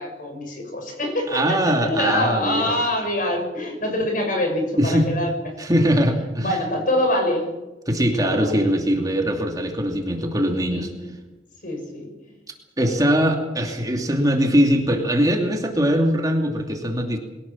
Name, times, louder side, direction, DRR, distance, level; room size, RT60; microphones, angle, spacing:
voice 1, 0.0-5.3 5.6-5.7 6.4-7.5 8.2-8.6 10.7-11.1 11.6-12.1 12.8-13.1, left 1 dB, 50° left, 4 dB, 6.7 m, -25 dB
voice 2, 1.3-2.8 4.8-5.1 5.6-6.6 7.9-10.9 12.8-17.2, equal, 20° right, 2 dB, 2.7 m, -21 dB
22.5 x 17.5 x 7.4 m, 1.1 s
head